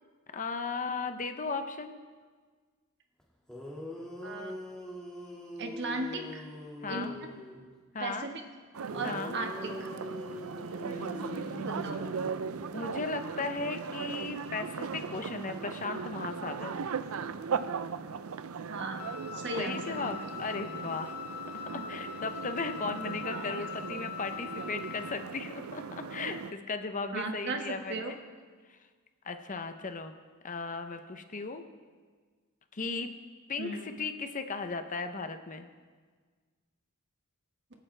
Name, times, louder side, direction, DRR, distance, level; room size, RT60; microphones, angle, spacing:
voice 1, 0.3-2.0 6.8-7.1 7.9-8.3 9.0-9.4 10.9-11.9 12.7-16.7 19.6-21.2 21.7-28.1 29.2-30.1 30.4-31.6 32.7-33.1 33.5-35.7, left 4 dB, 35° left, 8 dB, 0.7 m, -36 dB
sound 1, 3.2-3.3 3.5-7.6 8.9-12.9, left 1 dB, 5° left, 2.0 m, -43 dB
voice 2, 4.2-4.5 5.6-6.5 6.9-7.1 8.0-8.3 8.9-9.9 11.6-12.1 18.7-20.1 21.7-21.8 27.1-28.1 33.6-33.9, right 2 dB, 55° right, 3 dB, 1.4 m, -37 dB
sound 2, 8.7-26.5, right 5 dB, 75° right, 0.5 m, -38 dB
Wind instrument woodwind instrument, 19.0-25.2, left 8 dB, 90° left, 0.7 m, -42 dB
25.5 x 8.9 x 3.4 m, 1.5 s
head